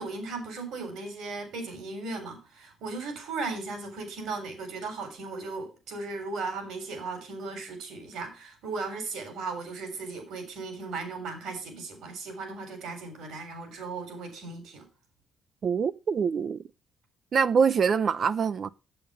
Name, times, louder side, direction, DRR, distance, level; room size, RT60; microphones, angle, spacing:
voice 1, 0.0-14.9, right 3 dB, 85° right, 4.0 m, -37 dB
voice 2, 15.6-16.6 17.3-18.7, right 6 dB, 50° right, 0.5 m, -24 dB
7.8 x 7.7 x 5.5 m
cardioid pair, 90°, 0 cm